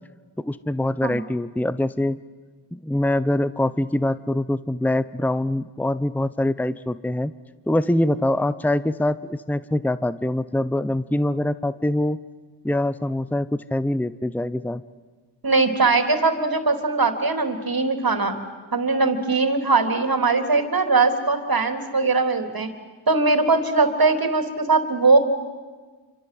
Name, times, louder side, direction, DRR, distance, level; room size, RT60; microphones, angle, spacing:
voice 1, 0.4-2.2 2.7-7.3 7.7-12.2 12.6-14.8, left 1 dB, 5° left, 16 dB, 0.8 m, -24 dB
voice 2, 15.4-18.3 18.7-22.7 23.1-25.2, right 3 dB, 50° right, 7 dB, 3.6 m, -20 dB
28.0 x 25.5 x 7.8 m, 1.4 s
cardioid pair, 55°, 46 cm